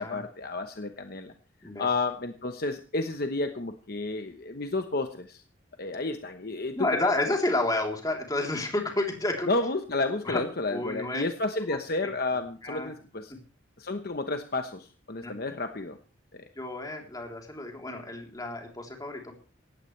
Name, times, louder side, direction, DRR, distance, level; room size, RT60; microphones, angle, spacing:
voice 1, 0.0-1.3 1.8-5.4 5.8-7.0 9.5-13.3 13.8-16.0 16.3-16.5, left 2 dB, 50° left, 6 dB, 1.1 m, -31 dB
voice 2, 6.7-9.5 10.3-10.4 10.7-11.2 12.3-12.9 15.2-15.3 16.6-19.3, left 2 dB, 20° left, 1 dB, 3.5 m, -30 dB
18.0 x 15.0 x 3.3 m, 0.37 s
head